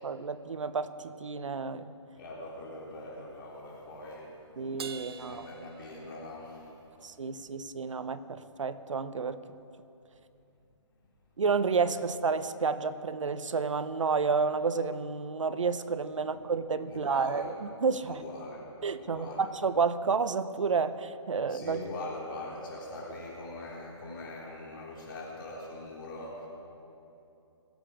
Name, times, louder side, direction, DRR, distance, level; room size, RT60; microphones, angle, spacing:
voice 1, 0.0-1.9 4.6-5.4 7.0-9.4 11.4-18.2 18.8-21.8, right 5 dB, 80° right, 13 dB, 0.8 m, -30 dB
voice 2, 2.2-6.7 16.9-17.5 18.1-18.7 19.0-19.5 21.5-26.5, left 2 dB, 45° left, -4 dB, 4.0 m, -42 dB
Crash cymbal, 4.8-6.5, right 7 dB, 50° right, 0.7 m, -45 dB
21.0 x 8.2 x 5.0 m, 2.7 s
hypercardioid pair, 155°, 16 cm